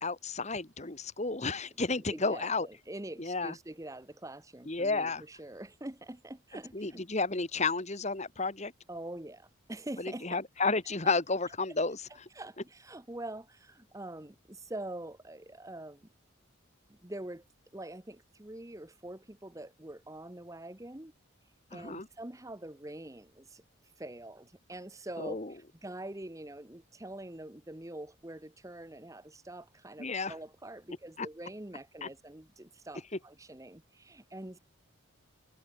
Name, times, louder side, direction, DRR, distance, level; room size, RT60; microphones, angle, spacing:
voice 1, 0.0-2.7 3.2-3.5 4.7-5.2 6.7-8.7 10.0-12.0 21.7-22.1 25.2-25.5 30.0-30.3 31.2-31.3 32.0-32.1, left 3 dB, 30° left, 1.6 m, -32 dB
voice 2, 2.0-7.0 8.9-10.4 12.3-16.1 16.9-17.4 17.7-21.1 21.7-23.6 24.0-34.6, right 1 dB, 15° right, 1.0 m, -44 dB
open air
head